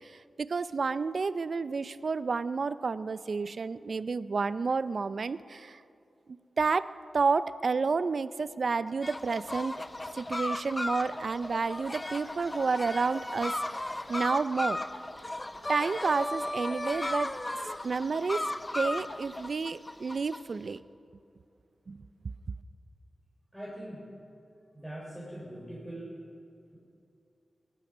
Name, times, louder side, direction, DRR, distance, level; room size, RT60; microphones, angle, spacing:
voice 1, 0.0-5.8 6.6-9.8 10.1-14.8 15.7-17.4 17.8-18.5 18.7-20.8 21.9-22.1, right 4 dB, 60° right, 15 dB, 0.5 m, -30 dB
sound 1, 9.0-20.4, left 1 dB, 20° left, 0.7 m, -35 dB
voice 2, 23.5-24.0 24.7-26.1, right 1 dB, ahead, -7 dB, 4.3 m, -42 dB
19.5 x 12.0 x 6.2 m, 2.7 s
wide cardioid pair, 90°, 0 cm